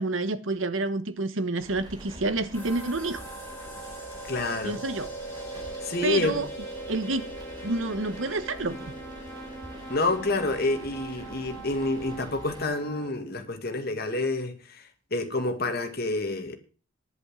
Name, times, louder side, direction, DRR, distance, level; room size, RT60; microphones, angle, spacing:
voice 1, 0.0-3.3 4.6-5.1 6.0-6.5 6.9-7.2 7.6-8.9, right 2 dB, 80° right, 1.2 m, -29 dB
sound 1, 1.6-12.6, equal, 20° right, 3.9 m, -46 dB
sound 2, 2.5-13.1, right 2 dB, 10° left, 5.2 m, -40 dB
voice 2, 4.2-4.8 5.8-6.4 9.9-16.6, left 2 dB, 50° left, 2.1 m, -28 dB
11.0 x 8.3 x 7.6 m
head